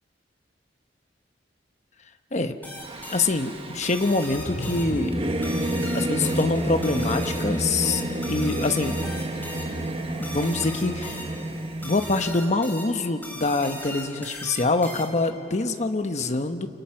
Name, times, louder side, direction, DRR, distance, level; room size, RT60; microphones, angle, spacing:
sound 1, 2.6-15.4, left 1 dB, 10° left, 3.8 m, -40 dB
Singing / Musical instrument, 2.8-12.4, right 1 dB, 30° right, 1.4 m, -30 dB
voice 1, 3.1-5.2 5.9-8.0 8.3-9.0 10.2-11.3 11.8-16.7, left 3 dB, 40° left, 7 dB, 1.1 m, -25 dB
sound 2, 4.2-5.4, equal, 65° left, 5.1 m, -35 dB
29.5 x 26.5 x 5.9 m, 2.4 s
head